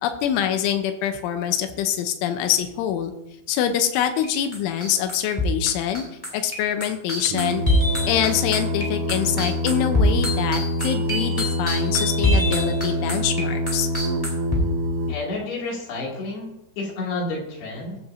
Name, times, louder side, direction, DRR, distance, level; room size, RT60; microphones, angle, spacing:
voice 1, 0.0-3.1 3.5-6.0 6.3-7.6 8.0-13.9, left 10 dB, 90° left, 7 dB, 3.2 m, -25 dB
sound 1, 3.9-4.3 4.5-14.6, left 1 dB, 5° left, 2.9 m, -25 dB
Singing, 7.3-15.2, left 1 dB, 80° right, 3.2 m, -26 dB
voice 2, 15.1-18.0, left 2 dB, 60° left, -3 dB, 4.3 m, -30 dB
15.5 x 9.7 x 2.7 m, 0.89 s
omnidirectional pair, 5.6 m